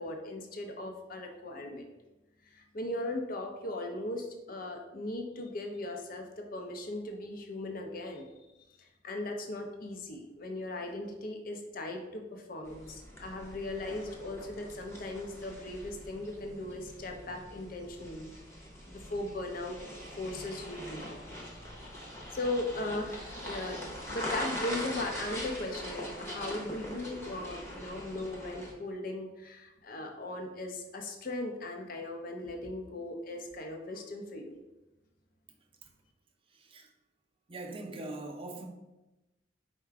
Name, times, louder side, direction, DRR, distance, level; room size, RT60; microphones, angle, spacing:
voice 1, 0.0-1.9 2.4-8.3 8.8-18.3 18.9-19.8 20.2-21.0 22.3-34.6, left 2 dB, 45° left, 4 dB, 0.6 m, -38 dB
sound 1, 12.7-28.7, equal, 15° left, 0.8 m, -42 dB
voice 2, 36.5-36.9 37.5-38.7, right 2 dB, 30° right, 2 dB, 0.5 m, -42 dB
4.8 x 2.2 x 4.6 m, 1.0 s
head